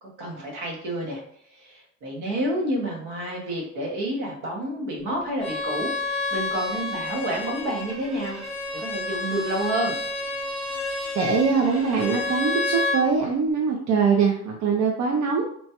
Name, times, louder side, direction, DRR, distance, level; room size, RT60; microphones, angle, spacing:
voice 1, 0.0-1.2 1.5-8.4 8.7-10.0, right 1 dB, 85° right, -1 dB, 1.0 m, -29 dB
Bowed string instrument, 5.4-13.0, left 3 dB, ahead, 0.9 m, -29 dB
voice 2, 11.2-15.5, right 5 dB, 70° right, 1 dB, 0.5 m, -22 dB
3.0 x 2.2 x 2.8 m, 0.67 s
cardioid pair, 90°, 30 cm